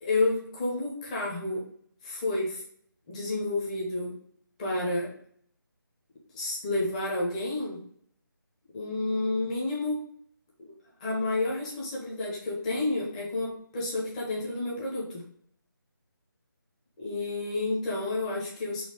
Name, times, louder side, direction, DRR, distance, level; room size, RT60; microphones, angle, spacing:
voice 1, 0.0-1.6 2.0-2.6 3.1-4.1 4.6-5.1 6.3-7.8 8.7-10.1 10.6-10.7 11.0-15.2 17.0-18.8, left 2 dB, 20° left, -4 dB, 1.0 m, -30 dB
4.1 x 2.7 x 4.7 m, 0.63 s
figure-of-eight pair, 160°, 12 cm